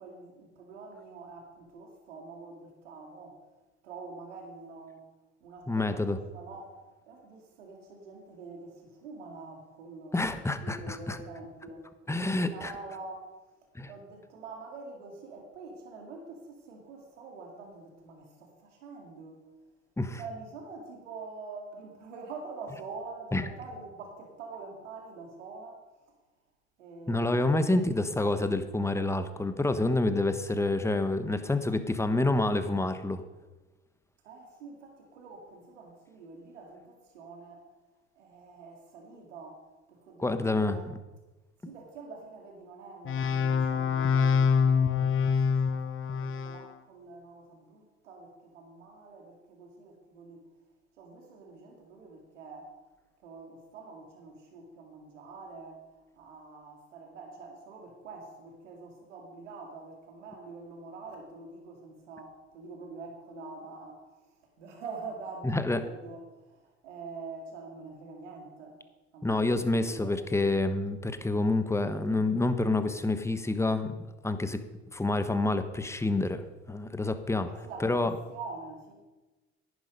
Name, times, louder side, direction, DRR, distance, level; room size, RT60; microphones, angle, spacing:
voice 1, 0.0-3.4 3.8-5.1 5.4-10.2 10.6-13.3 13.9-19.5 20.1-25.8 26.8-27.9 28.4-28.6 34.2-37.7 38.1-40.9 41.6-50.4 51.0-52.8 53.2-55.9 56.1-68.8 69.1-69.5 69.7-70.2 77.5-78.9, right 3 dB, 85° right, 1 dB, 2.3 m, -46 dB
voice 2, 5.7-6.2 10.1-11.2 12.1-12.7 13.7-13.9 20.0-20.2 23.3-23.4 27.1-33.2 40.2-41.0 65.4-65.8 69.2-74.0 74.2-74.6 74.9-77.5 77.8-78.1, left 2 dB, 10° left, 10 dB, 1.1 m, -28 dB
sound 1, 43.1-46.7, left 6 dB, 35° left, 1.0 m, -25 dB
10.5 x 10.0 x 5.2 m, 1.1 s
hypercardioid pair, 65°, 35 cm